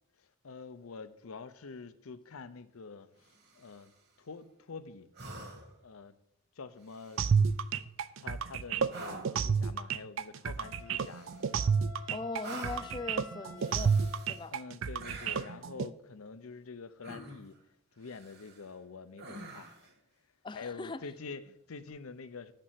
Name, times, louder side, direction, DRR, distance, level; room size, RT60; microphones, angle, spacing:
voice 1, 0.2-3.9 4.2-5.1 5.8-6.2 6.6-7.5 8.2-11.3 14.1-17.6 18.0-19.9 20.5-22.5, left 4 dB, 85° left, 0.7 m, -47 dB
sound 1, 3.2-3.9 5.1-5.8 6.8-7.6 8.9-9.4 11.0-11.7 12.4-13.0 13.6-14.5 15.0-15.6 17.0-17.6 18.0-18.7 19.2-19.9 21.8-21.9, right 2 dB, 50° right, 1.6 m, -47 dB
sound 2, 7.2-15.9, right 6 dB, 70° right, 0.4 m, -30 dB
Wind instrument woodwind instrument, 10.6-14.6, left 6 dB, 60° left, 1.0 m, -51 dB
voice 2, 12.1-14.0 14.3-14.5 20.4-21.0, left 3 dB, 20° left, 0.3 m, -40 dB
6.7 x 6.2 x 7.5 m
head